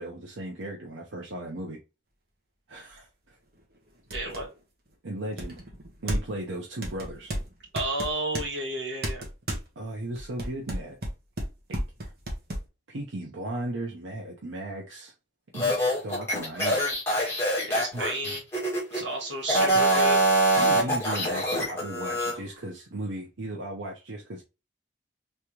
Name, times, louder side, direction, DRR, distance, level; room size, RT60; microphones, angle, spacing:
voice 1, 0.0-1.8 2.7-3.1 5.0-5.6 6.0-7.3 9.8-11.0 11.7-12.1 12.9-15.1 15.5-16.8 17.9-18.3 20.6-24.4, right 1 dB, 90° right, 0.8 m, -36 dB
sound 1, 3.0-3.1 3.6-3.7 4.1-4.5 5.4-6.4 6.8-8.5 9.0-9.7 10.2-12.7, right 1 dB, 55° right, 1.1 m, -33 dB
voice 2, 4.1-4.5 7.7-9.2 17.6-18.4 18.9-20.3, right 1 dB, 70° right, 1.6 m, -32 dB
sound 2, 15.5-19.0 19.4-22.3, right 1 dB, 15° left, 1.6 m, -24 dB
3.5 x 3.2 x 2.9 m
head